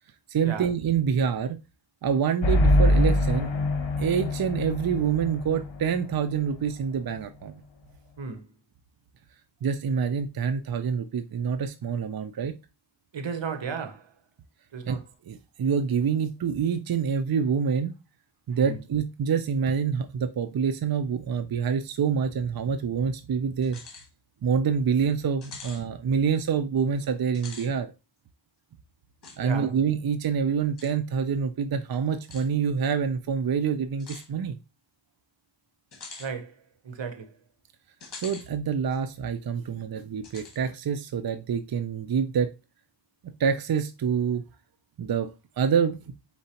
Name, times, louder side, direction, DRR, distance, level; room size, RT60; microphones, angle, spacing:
voice 1, 0.3-1.6 2.0-3.5 4.0-7.6 9.6-12.5 14.9-15.0 15.3-17.9 18.5-23.8 24.4-27.9 29.4-34.6 38.2-42.5 43.4-44.4 45.0-45.3 45.6-46.1, right 7 dB, 55° right, 0.5 m, -26 dB
sound 1, 2.4-6.0, left 1 dB, 90° left, 0.7 m, -23 dB
voice 2, 13.1-14.1 14.7-15.0 18.6-18.8 29.4-29.7 36.2-36.6 36.8-37.3, right 5 dB, 80° right, 0.8 m, -34 dB
sound 2, 23.6-24.1 24.5-24.6 25.4-25.8 27.3-27.7 29.2-29.4 30.8-30.9 32.2-32.5 34.0-34.3 35.9-36.3 38.0-38.5 38.9-39.0 40.2-40.6, left 4 dB, 65° left, 1.1 m, -44 dB
4.5 x 3.7 x 2.8 m
wide cardioid pair, 50°, 44 cm